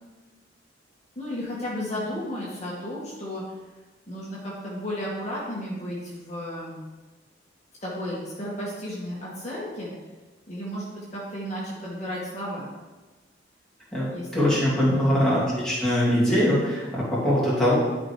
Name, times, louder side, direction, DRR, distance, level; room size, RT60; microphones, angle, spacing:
voice 1, 1.2-3.6 4.1-6.8 7.8-9.9 10.5-12.7 14.1-15.3, equal, 35° left, -6 dB, 2.0 m, -34 dB
voice 2, 13.9-17.8, equal, 5° left, -8 dB, 3.1 m, -22 dB
11.5 x 5.3 x 4.9 m, 1.2 s
head